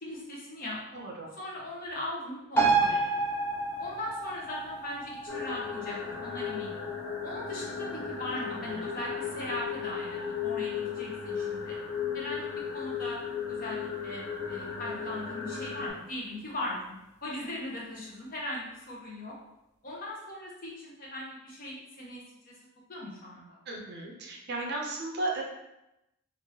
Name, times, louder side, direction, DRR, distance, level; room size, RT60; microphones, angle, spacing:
voice 1, 0.0-0.8 1.4-3.0 3.8-6.8 7.2-11.8 12.1-13.2 13.5-19.3 19.8-22.5 22.9-23.6, left 1 dB, 45° left, -4 dB, 0.8 m, -39 dB
voice 2, 0.9-1.3 8.4-8.9 23.7-25.4, right 2 dB, 50° right, -1 dB, 0.6 m, -35 dB
sound 1, 2.6-9.5 9.9-10.0, right 4 dB, 10° left, 0.7 m, -31 dB
sound 2, 5.3-15.9, left 6 dB, 80° left, 0.9 m, -35 dB
3.1 x 2.5 x 2.8 m, 0.90 s
head